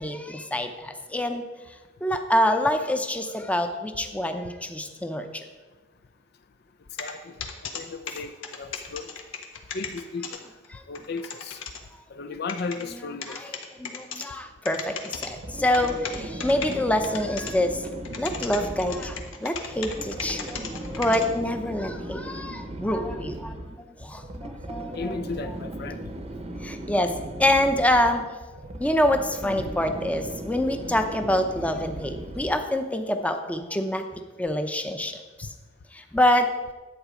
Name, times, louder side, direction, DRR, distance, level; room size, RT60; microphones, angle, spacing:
voice 1, 0.0-1.4 2.0-5.5 10.7-10.8 13.3-13.4 13.8-17.8 18.2-25.2 26.6-27.1 27.4-28.3 28.8-35.5 35.9-36.5, left 1 dB, 5° left, 6 dB, 0.7 m, -26 dB
sound 1, 7.0-7.1 7.4-7.8 8.1-10.4 10.6-10.7 10.9-11.8 12.5-12.8 13.2-14.3 14.6-15.3 15.7-16.7 17.0-17.5 17.8-21.3, left 6 dB, 85° left, 1.4 m, -35 dB
voice 2, 7.0-7.3 7.7-9.1 9.7-10.4 10.9-11.6 12.1-13.4 24.9-26.0 29.6-29.7, left 4 dB, 55° left, 10 dB, 0.5 m, -35 dB
sound 2, 15.1-32.8, right 1 dB, 35° right, 0.8 m, -37 dB
11.0 x 8.4 x 5.1 m, 1.2 s
head